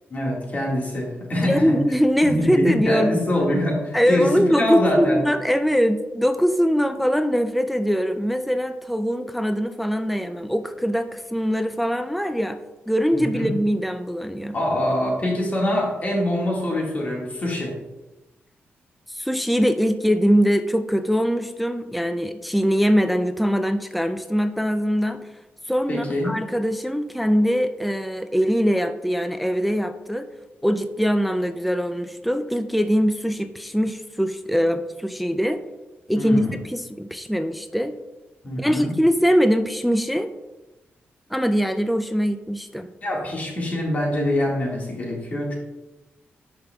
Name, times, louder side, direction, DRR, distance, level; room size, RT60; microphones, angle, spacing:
voice 1, 0.1-1.8 2.2-5.2 13.1-13.5 14.5-17.7 25.9-26.3 36.1-36.6 38.4-38.9 43.0-45.5, left 1 dB, 40° left, -2 dB, 1.8 m, -24 dB
voice 2, 1.4-3.2 3.9-12.6 12.9-14.6 19.1-25.2 25.7-30.3 30.6-35.6 36.1-37.9 38.6-40.3 41.3-42.9, equal, ahead, 8 dB, 0.3 m, -22 dB
11.0 x 5.2 x 2.3 m, 1.0 s
wide cardioid pair, 125°, 4 cm